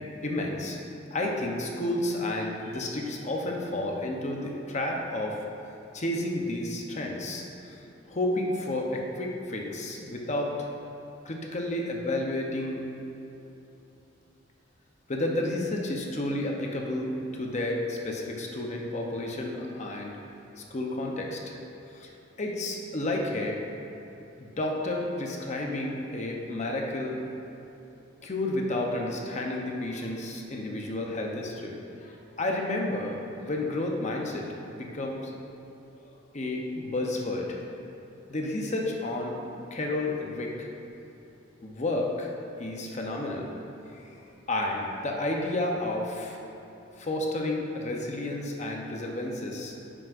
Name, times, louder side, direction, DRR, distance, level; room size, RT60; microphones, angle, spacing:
voice 1, 0.2-0.8 1.1-5.4 5.9-7.7 8.1-10.7 11.2-12.8 15.1-20.1 20.6-21.6 21.9-22.1 22.4-23.6 24.4-27.2 28.2-35.3 36.3-37.6 38.3-39.3 39.7-40.7 41.6-42.3 42.6-43.5 44.5-46.4 47.0-49.7, left 1 dB, 40° left, 0 dB, 0.8 m, -31 dB
9.4 x 6.2 x 2.5 m, 3.0 s
head